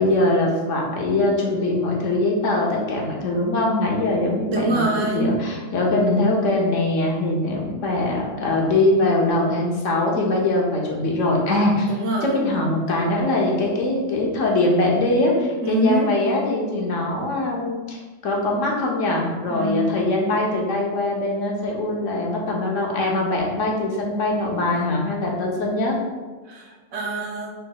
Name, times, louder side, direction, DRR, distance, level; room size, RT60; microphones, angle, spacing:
voice 1, 0.0-12.0 12.2-25.9, left 2 dB, 75° left, -1 dB, 1.2 m, -22 dB
voice 2, 4.5-5.4 11.9-12.3 15.6-16.1 19.5-20.1 26.5-27.5, right 2 dB, 70° right, -1 dB, 1.2 m, -25 dB
5.8 x 4.0 x 2.3 m, 1.3 s
omnidirectional pair, 1.3 m